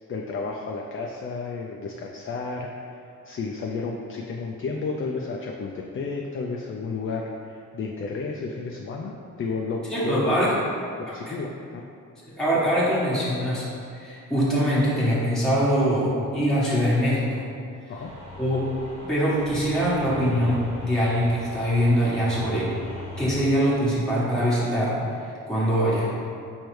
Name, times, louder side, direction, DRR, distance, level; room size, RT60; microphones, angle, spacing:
voice 1, 0.1-10.4 11.0-11.8 12.2-12.4 17.9-18.1, left 4 dB, 40° left, 0 dB, 0.4 m, -32 dB
voice 2, 9.9-10.6 11.1-11.4 12.3-13.7 13.9-17.5 18.4-18.6 19.0-22.7 23.2-26.1, equal, ahead, -9 dB, 1.2 m, -23 dB
sound 1, 18.0-23.3, left 1 dB, 20° right, 1.3 m, -39 dB
4.6 x 3.1 x 3.1 m, 2.5 s
cardioid pair, 65°, 33 cm